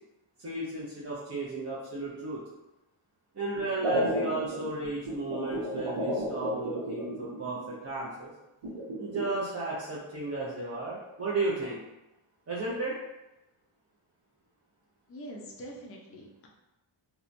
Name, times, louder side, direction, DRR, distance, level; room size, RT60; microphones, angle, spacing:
voice 1, 0.4-2.4 3.3-8.3 9.0-11.8 12.5-12.9, right 2 dB, 30° right, -7 dB, 0.5 m, -34 dB
sound 1, 3.6-7.7 8.6-9.3, equal, 75° right, 0.8 m, -33 dB
voice 2, 15.1-16.5, right 1 dB, 30° left, -1 dB, 0.4 m, -44 dB
2.8 x 2.2 x 2.5 m, 0.99 s
wide cardioid pair, 115°, 49 cm